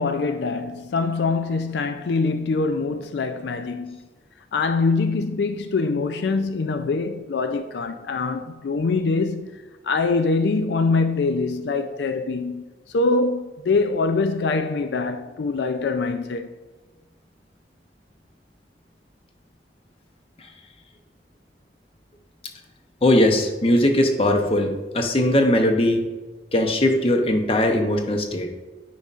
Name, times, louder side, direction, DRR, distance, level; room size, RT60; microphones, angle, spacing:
voice 1, 0.0-4.0 4.5-16.5, left 3 dB, 75° left, 0.4 m, -24 dB
voice 2, 23.0-26.0 26.5-28.5, left 1 dB, 30° left, 0.7 m, -20 dB
9.1 x 5.4 x 2.5 m
head